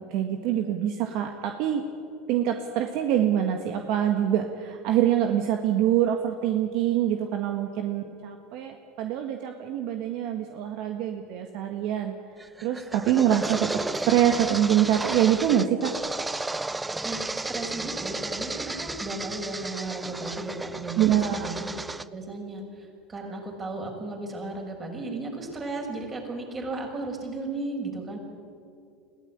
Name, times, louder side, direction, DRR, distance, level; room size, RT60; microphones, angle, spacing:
voice 1, 0.0-1.8 2.3-12.1 12.6-15.9 21.0-21.5, right 10 dB, 65° right, 5 dB, 1.6 m, -25 dB
sound 1, 12.4-22.1, right 2 dB, 10° right, 0.6 m, -33 dB
voice 2, 17.0-21.7 22.1-28.2, right 2 dB, 30° right, 1 dB, 6.3 m, -35 dB
21.5 x 16.0 x 10.0 m, 2.5 s
hypercardioid pair, 90°, 0 cm